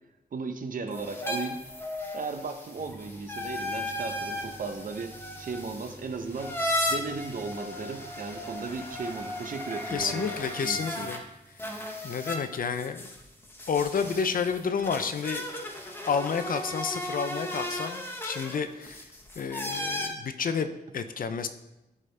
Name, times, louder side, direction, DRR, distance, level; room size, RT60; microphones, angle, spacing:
voice 1, 0.3-1.6 2.1-6.6 6.9-10.3 10.6-11.1, right 4 dB, 55° right, 7 dB, 0.9 m, -36 dB
sound 1, 0.9-11.2 11.6-20.1, left 1 dB, 15° left, 1.2 m, -36 dB
sound 2, 2.8-15.2, right 2 dB, 30° right, 1.7 m, -53 dB
voice 2, 9.9-11.2 12.0-13.1 13.7-15.5 16.1-19.0 19.4-21.5, left 6 dB, 60° left, 10 dB, 0.6 m, -30 dB
14.0 x 5.0 x 3.4 m, 0.94 s
wide cardioid pair, 110°, 16 cm